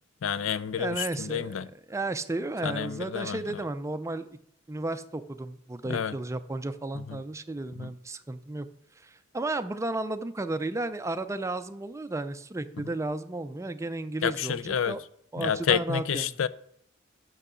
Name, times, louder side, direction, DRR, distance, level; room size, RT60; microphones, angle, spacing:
voice 1, 0.2-1.7 2.6-3.4 5.9-6.1 7.1-7.2 7.8-7.9 14.2-14.9 15.4-16.5, left 8 dB, 70° left, 0.4 m, -29 dB
voice 2, 0.8-4.3 4.7-8.7 9.0-15.0 15.3-16.4, right 2 dB, 15° right, 0.4 m, -33 dB
6.7 x 6.1 x 6.7 m
head